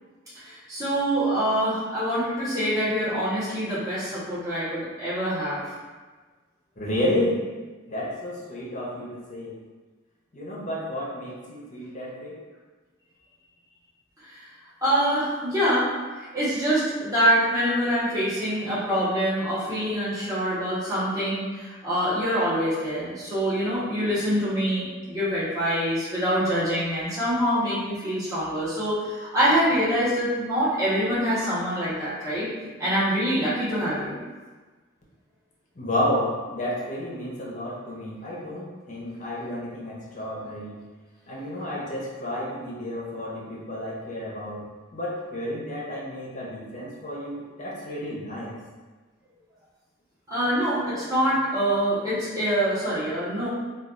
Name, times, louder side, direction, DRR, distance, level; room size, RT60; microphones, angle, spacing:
voice 1, 0.3-5.7 14.2-14.5 14.8-32.5 32.8-34.2 50.3-53.5, equal, 15° right, -12 dB, 1.1 m, -25 dB
voice 2, 6.8-7.4 7.9-9.6 10.3-12.4 35.8-40.8 41.3-44.6 44.9-48.5, left 1 dB, 35° left, -5 dB, 0.6 m, -31 dB
4.4 x 2.3 x 2.5 m, 1.3 s
head